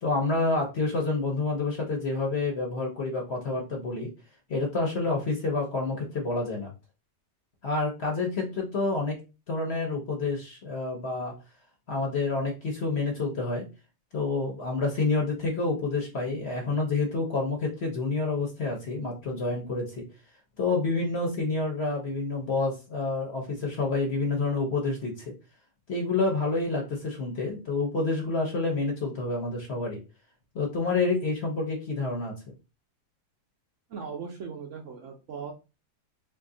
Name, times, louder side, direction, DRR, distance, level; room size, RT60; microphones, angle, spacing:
voice 1, 0.0-4.1 4.5-6.7 7.6-9.2 9.5-11.3 11.9-13.7 14.1-20.1 20.6-25.2 25.9-30.0 30.5-32.3, left 3 dB, 50° left, 0 dB, 0.9 m, -28 dB
voice 2, 33.9-35.5, right 6 dB, 65° right, 1 dB, 0.8 m, -38 dB
2.7 x 2.5 x 3.7 m, 0.29 s
omnidirectional pair, 1.7 m